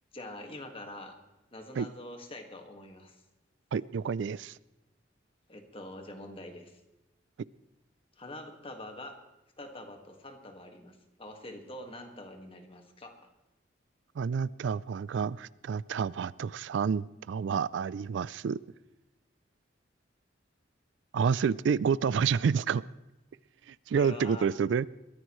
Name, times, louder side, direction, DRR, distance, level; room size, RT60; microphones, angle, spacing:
voice 1, 0.1-1.2 1.5-3.2 5.5-6.8 8.2-9.2 9.6-13.2 23.9-24.5, left 1 dB, 30° left, 5 dB, 1.8 m, -45 dB
voice 2, 3.7-4.6 14.2-18.6 21.1-22.8 23.7-24.9, right 6 dB, 70° right, 20 dB, 0.4 m, -29 dB
22.0 x 14.0 x 3.1 m, 1.0 s
head